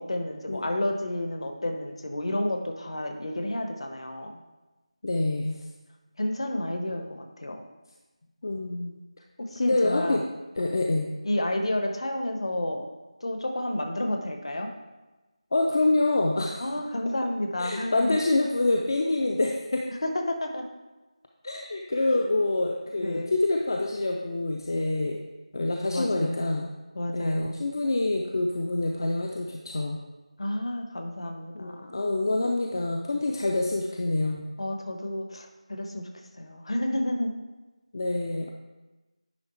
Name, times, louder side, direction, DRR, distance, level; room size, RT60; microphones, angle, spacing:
voice 1, 0.0-4.4 6.2-7.6 9.5-10.2 11.2-12.9 13.2-14.7 16.6-18.2 20.0-20.6 23.0-23.3 25.9-26.4 26.9-27.6 30.4-32.0 34.6-36.1 36.4-37.3, left 1 dB, 55° left, 4 dB, 1.1 m, -30 dB
voice 2, 5.0-5.6 8.4-9.0 9.6-10.2 10.6-11.1 15.5-16.7 17.6-19.8 21.4-25.2 25.5-26.7 27.1-30.0 31.5-34.5 37.9-38.5, left 2 dB, 35° left, 2 dB, 0.5 m, -26 dB
9.7 x 3.6 x 4.4 m, 1.1 s
figure-of-eight pair, 170°, 4 cm